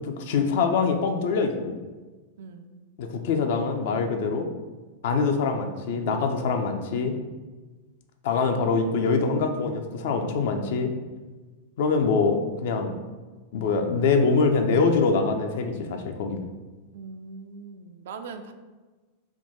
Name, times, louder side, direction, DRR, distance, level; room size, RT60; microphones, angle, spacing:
voice 1, 0.0-1.8 3.0-4.5 5.0-7.1 8.2-10.9 11.8-12.9 13.5-16.4, left 4 dB, 55° left, 5 dB, 0.4 m, -24 dB
voice 2, 2.4-2.7 16.9-18.5, right 4 dB, 60° right, 7 dB, 0.3 m, -41 dB
3.5 x 2.2 x 4.1 m, 1.3 s
figure-of-eight pair, 90°, 0 cm